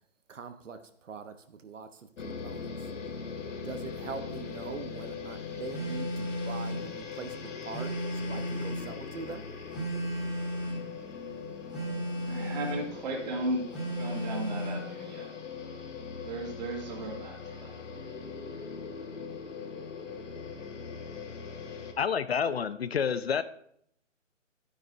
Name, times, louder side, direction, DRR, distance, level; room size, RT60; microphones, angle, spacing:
voice 1, 0.3-2.9 3.6-9.5, right 4 dB, 75° right, 9 dB, 1.0 m, -43 dB
sound 1, 2.2-21.9, left 5 dB, 70° left, 1.5 m, -41 dB
Telephone, 5.7-6.8 7.7-8.9 9.7-10.9 11.7-12.8 13.7-14.8, equal, ahead, 2.7 m, -34 dB
voice 2, 12.2-13.7 14.0-15.3 16.2-17.8, right 1 dB, 35° right, 0 dB, 2.3 m, -35 dB
voice 3, 22.0-23.4, left 7 dB, 55° left, 15 dB, 0.5 m, -28 dB
12.5 x 9.5 x 2.6 m, 0.70 s
hypercardioid pair, 160°, 38 cm